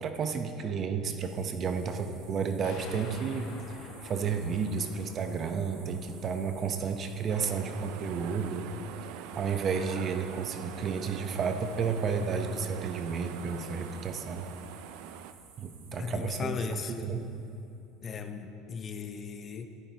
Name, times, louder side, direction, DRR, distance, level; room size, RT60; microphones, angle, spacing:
voice 1, 0.0-3.5 3.8-8.7 9.1-14.4 15.6-17.3, right 5 dB, 40° right, 7 dB, 0.9 m, -32 dB
sound 1, 1.2-17.9, right 6 dB, 85° right, 1.9 m, -55 dB
sound 2, 2.6-11.8, left 3 dB, 80° left, 1.8 m, -51 dB
sound 3, 7.3-15.3, right 10 dB, 70° right, 0.5 m, -44 dB
voice 2, 15.9-16.9 18.0-19.7, left 6 dB, 35° left, 7 dB, 0.7 m, -37 dB
14.5 x 12.5 x 2.9 m, 2.6 s
supercardioid pair, 105°, 0 cm